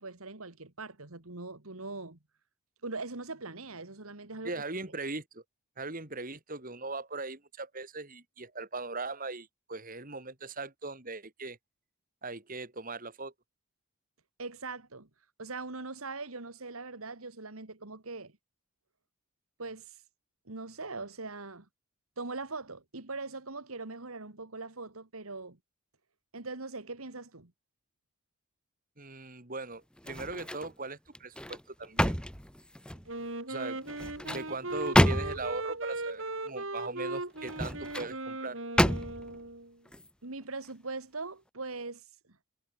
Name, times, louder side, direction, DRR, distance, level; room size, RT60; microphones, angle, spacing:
voice 1, 0.0-2.2 2.8-4.5 14.4-15.1 15.4-18.3 19.6-20.0 20.5-21.7 22.2-25.6 26.3-27.5 40.2-42.0, right 3 dB, 75° right, 2.3 m, -41 dB
voice 2, 4.4-5.4 5.8-11.6 12.2-13.3 29.0-32.2 33.5-33.8 34.2-38.6, right 3 dB, 40° right, 3.1 m, -39 dB
sound 1, 30.0-30.7 31.1-33.1 33.8-35.6 37.4-38.1 38.8-39.4 39.9-40.1, equal, 5° left, 1.8 m, -29 dB
Wind instrument woodwind instrument, 33.1-39.7, right 2 dB, 60° right, 4.4 m, -38 dB
head